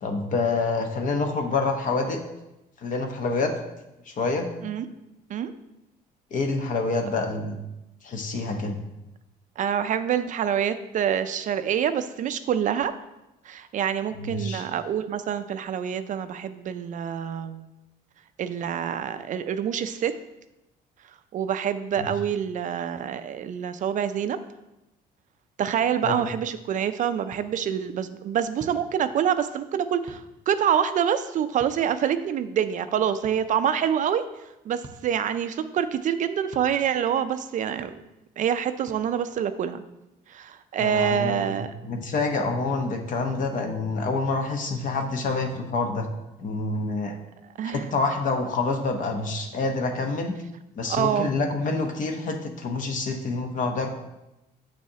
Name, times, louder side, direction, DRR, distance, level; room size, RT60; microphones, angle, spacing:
voice 1, 0.0-2.2 2.8-3.5 4.1-4.5 6.3-7.6 8.0-8.8 14.2-14.6 22.0-22.1 26.0-26.2 40.8-46.1 46.4-47.2 47.6-50.3 50.8-53.9, left 3 dB, 50° left, 4 dB, 0.9 m, -27 dB
voice 2, 9.6-12.9 13.5-17.7 18.4-20.1 21.3-24.4 25.6-34.3 34.7-37.9 38.4-39.8 40.3-41.7 47.6-47.9 50.9-51.3, right 8 dB, 50° right, 11 dB, 0.4 m, -26 dB
sound 1, 27.3-27.4 28.6-28.8 30.1-30.2 31.6-31.8 33.2-33.4 34.8-35.0 36.5-36.7 37.8-37.9 38.9-39.0, right 3 dB, 30° right, 0.7 m, -44 dB
6.8 x 6.3 x 2.8 m, 0.94 s
cardioid pair, 110°, 17 cm